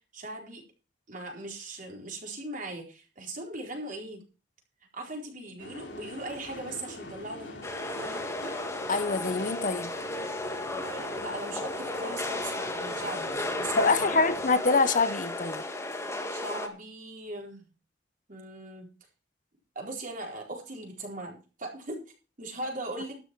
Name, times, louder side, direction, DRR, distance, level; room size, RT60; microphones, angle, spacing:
voice 1, 0.1-0.6 1.1-4.2 4.9-7.6 8.0-8.2 10.7-13.3 13.6-14.2 16.3-17.6 18.3-18.9 19.7-22.0 22.4-23.1, right 2 dB, 50° right, 4.3 m, -39 dB
sound 1, 5.6-14.5, left 2 dB, 85° left, 3.4 m, -44 dB
sound 2, 7.6-16.7, left 1 dB, 15° left, 1.8 m, -34 dB
voice 2, 8.9-9.9 13.8-15.6, left 3 dB, 45° left, 0.8 m, -25 dB
12.5 x 10.5 x 4.6 m
head